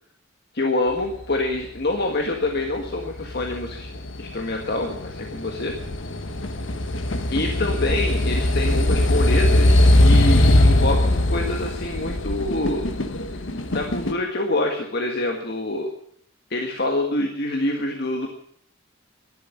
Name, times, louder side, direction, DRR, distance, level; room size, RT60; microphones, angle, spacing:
voice 1, 0.5-3.9 4.2-5.7 7.3-12.9 13.7-15.9 16.5-18.3, left 2 dB, 55° left, 2 dB, 1.7 m, -26 dB
sound 1, 2.8-14.1, left 1 dB, 75° left, 1.4 m, -20 dB
12.0 x 11.5 x 9.6 m, 0.66 s
head